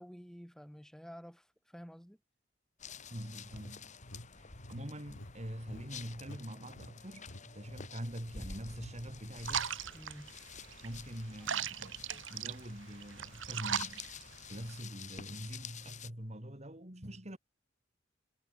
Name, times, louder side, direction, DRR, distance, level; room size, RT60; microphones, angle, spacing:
voice 1, 0.0-2.2 9.9-10.3 11.4-11.7 12.1-12.3, equal, 5° left, 4.9 m, -51 dB
sound 1, 2.8-16.1, left 6 dB, 40° left, 2.2 m, -50 dB
voice 2, 3.1-3.9 4.3-9.8 10.8-14.1 14.5-17.4, equal, 35° right, 4.7 m, -44 dB
sound 2, 3.5-6.4 6.7-7.0 7.3-7.4 7.7-7.9 8.2-8.9, left 1 dB, 80° left, 3.2 m, -50 dB
sound 3, 9.4-14.8, right 8 dB, 80° right, 2.1 m, -39 dB
head